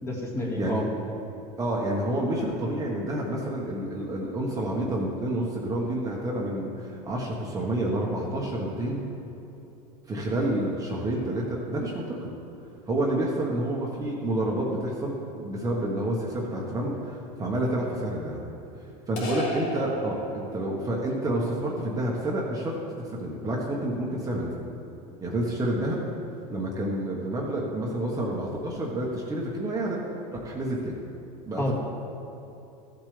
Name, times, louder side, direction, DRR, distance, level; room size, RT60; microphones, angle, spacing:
voice 1, 0.0-0.8 31.6-31.7, left 1 dB, 15° left, -3 dB, 1.9 m, -29 dB
voice 2, 1.6-9.0 10.1-12.3 12.9-15.1 15.4-18.4 19.1-22.7 23.1-24.6 25.2-26.0 26.5-30.0 30.4-31.0 31.5-31.7, right 1 dB, 20° right, -3 dB, 1.3 m, -29 dB
sound 1, 19.2-20.8, right 1 dB, 65° left, 2.5 m, -34 dB
14.5 x 7.5 x 3.4 m, 3.0 s
supercardioid pair, 125°, 19 cm